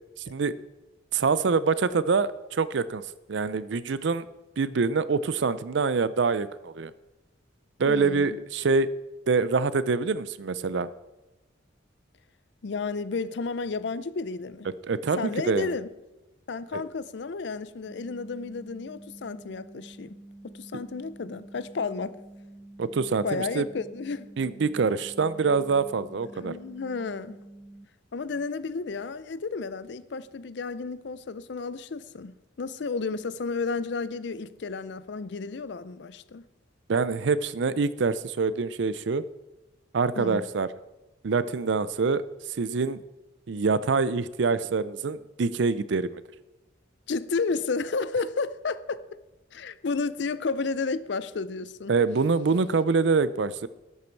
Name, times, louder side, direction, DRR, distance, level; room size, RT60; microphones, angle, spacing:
voice 1, 0.3-0.6 1.1-3.0 3.3-4.3 4.6-6.9 7.8-8.9 9.3-10.9 14.8-15.7 16.7-16.8 22.8-23.7 24.4-26.5 36.9-39.2 39.9-40.7 41.2-42.2 42.6-43.0 43.5-46.2 51.9-53.7, right 4 dB, 65° right, 0.5 m, -25 dB
voice 2, 7.9-8.4 12.6-14.7 15.2-15.9 16.5-20.2 20.4-22.2 23.2-24.3 26.3-27.4 28.1-36.4 40.2-40.4 47.1-49.0 49.5-51.9, left 4 dB, 60° left, 0.5 m, -32 dB
sound 1, 17.9-27.9, right 1 dB, 5° right, 0.5 m, -48 dB
12.0 x 8.3 x 4.6 m
head